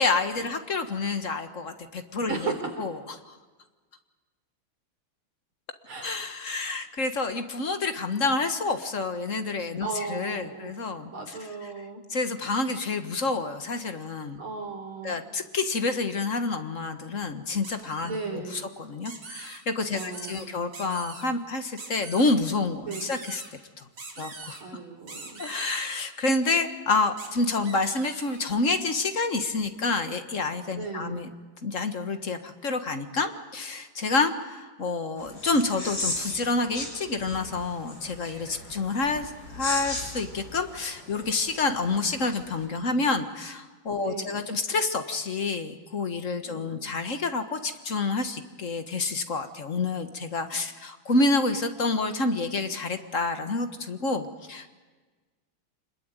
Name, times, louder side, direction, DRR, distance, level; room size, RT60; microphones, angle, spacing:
voice 1, 0.0-3.4 6.0-11.8 12.1-14.4 15.0-23.4 23.8-23.9 24.2-24.6 25.4-31.3 31.6-54.7, left 3 dB, 40° left, 8 dB, 1.6 m, -28 dB
voice 2, 5.9-6.2 9.8-10.7 11.1-12.0 14.4-15.2 18.0-18.6 19.9-20.6 22.9-23.1 24.2-24.3 24.6-25.4 30.7-31.2 44.0-44.4 46.4-46.8, right 4 dB, 80° right, 4 dB, 4.6 m, -36 dB
sound 1, 17.6-18.3 19.0-19.6 19.9-20.4 20.7-21.3 21.8-22.3 22.9-23.5 24.0-24.6 25.1-26.0 27.2-27.3 27.6-28.4, right 3 dB, 55° right, 3.8 m, -42 dB
sound 2, 35.2-42.7, left 2 dB, 60° left, 5.8 m, -37 dB
26.0 x 21.5 x 9.0 m, 1.3 s
omnidirectional pair, 2.3 m